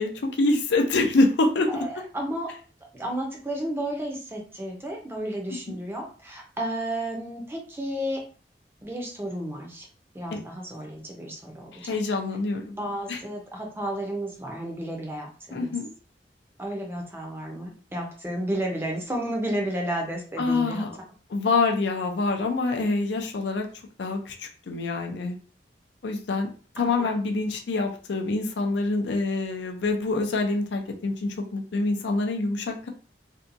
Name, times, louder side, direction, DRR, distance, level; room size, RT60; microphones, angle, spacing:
voice 1, 0.0-1.8 5.7-5.8 10.3-10.4 11.7-12.8 13.1-13.2 15.5-15.9 20.4-21.0 21.3-23.7 24.0-25.4 26.0-26.5 26.8-32.9, left 3 dB, 75° left, 4 dB, 0.4 m, -26 dB
voice 2, 1.7-2.5 2.9-8.2 8.8-9.9 10.1-12.0 12.8-15.7 16.6-20.8 26.8-27.2, right 1 dB, 15° right, 0 dB, 0.5 m, -32 dB
2.7 x 2.2 x 2.5 m, 0.39 s
head